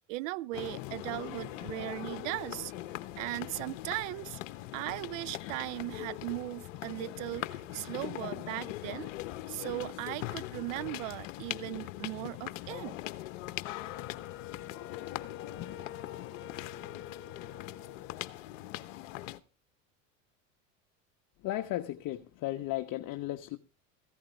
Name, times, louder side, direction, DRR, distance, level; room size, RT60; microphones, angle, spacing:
voice 1, 0.1-2.7 3.2-4.4 4.7-9.1 9.5-13.0, right 21 dB, 75° right, 0.7 m, -38 dB
sound 1, 0.5-19.4, left 15 dB, 75° left, 1.0 m, -41 dB
Wind instrument woodwind instrument, 13.7-18.4, left 9 dB, 35° left, 0.7 m, -48 dB
voice 2, 21.4-23.6, left 15 dB, 50° left, 1.2 m, -35 dB
15.5 x 13.5 x 3.4 m
hypercardioid pair, 90°, 39 cm